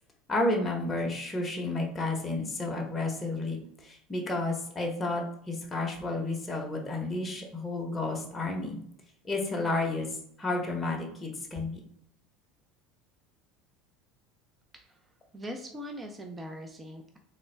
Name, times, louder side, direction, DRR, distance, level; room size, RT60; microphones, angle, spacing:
voice 1, 0.3-8.8 9.2-10.1 10.4-11.8, left 2 dB, 15° left, 0 dB, 0.8 m, -31 dB
voice 2, 14.7-15.1 15.3-17.2, equal, 15° right, 3 dB, 0.4 m, -41 dB
3.4 x 2.1 x 3.2 m, 0.68 s
supercardioid pair, 115°, 0 cm